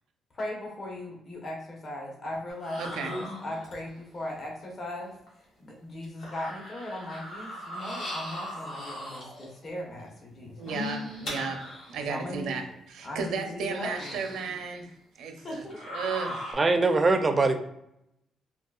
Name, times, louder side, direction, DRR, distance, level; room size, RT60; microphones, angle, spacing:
voice 1, 0.3-5.1 5.6-10.6 12.1-12.6 13.0-14.2 15.4-15.8, left 1 dB, 40° left, -1 dB, 0.8 m, -38 dB
sound 1, 2.5-4.0 5.3-5.4 6.0-9.5 10.5-12.1 12.7-12.8 13.8-14.7 15.5-16.5, left 1 dB, 70° left, 1.5 m, -38 dB
voice 2, 2.8-3.1 10.6-12.6 12.9-14.9 15.2-15.6 15.9-16.6, right 5 dB, 80° right, 5 dB, 0.5 m, -34 dB
voice 3, 16.5-17.6, right 3 dB, 30° right, 7 dB, 0.4 m, -22 dB
3.7 x 2.3 x 2.3 m, 0.81 s
cardioid pair, 90°, 0 cm